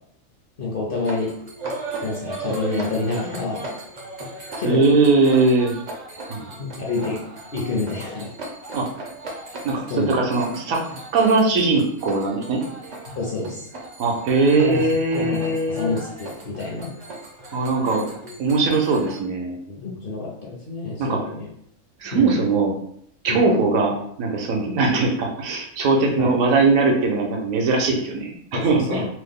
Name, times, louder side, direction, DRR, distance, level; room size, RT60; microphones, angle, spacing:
voice 1, 0.6-1.3 2.0-3.7 4.6-4.9 6.4-7.2 7.5-8.3 9.9-10.2 13.1-13.7 14.5-14.9 15.1-16.9 19.7-21.5 22.1-22.3 23.3-23.5 26.2-26.4 28.5-29.1, left 3 dB, 55° left, -3 dB, 0.6 m, -28 dB
sound 1, 1.0-19.2, right 2 dB, 50° right, 0.5 m, -37 dB
voice 2, 4.6-5.7 6.3-6.4 8.7-8.9 9.6-10.8 11.1-12.6 14.0-15.9 17.5-18.0 18.4-19.6 21.0-21.2 22.0-22.7 23.2-29.0, right 3 dB, 75° right, 1 dB, 1.0 m, -20 dB
3.0 x 2.0 x 3.5 m, 0.69 s
omnidirectional pair, 1.4 m